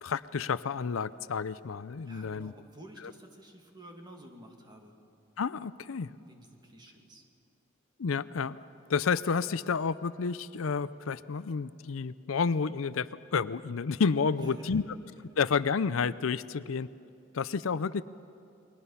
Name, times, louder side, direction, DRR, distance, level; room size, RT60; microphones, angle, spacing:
voice 1, 0.0-2.5 5.4-6.1 8.0-8.6 8.9-14.8 15.4-16.9 17.3-18.0, left 5 dB, 75° left, 16 dB, 0.5 m, -30 dB
voice 2, 2.0-4.9 6.3-7.2 14.4-14.8, right 1 dB, 20° right, 2 dB, 2.3 m, -49 dB
29.5 x 22.0 x 5.7 m, 2.6 s
head